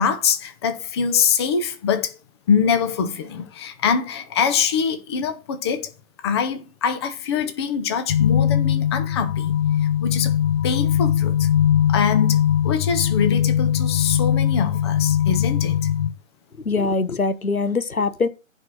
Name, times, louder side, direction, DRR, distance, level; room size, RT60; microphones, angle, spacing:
voice 1, 0.0-2.1 2.5-5.9 6.2-9.5 9.8-10.4 10.6-11.5 11.9-15.8, left 6 dB, 20° left, 0.8 m, -23 dB
sound 1, 8.1-16.1, left 10 dB, 45° left, 1.0 m, -20 dB
voice 2, 16.6-18.3, left 3 dB, 90° left, 1.0 m, -22 dB
10.0 x 4.4 x 6.1 m
figure-of-eight pair, 140°, 41 cm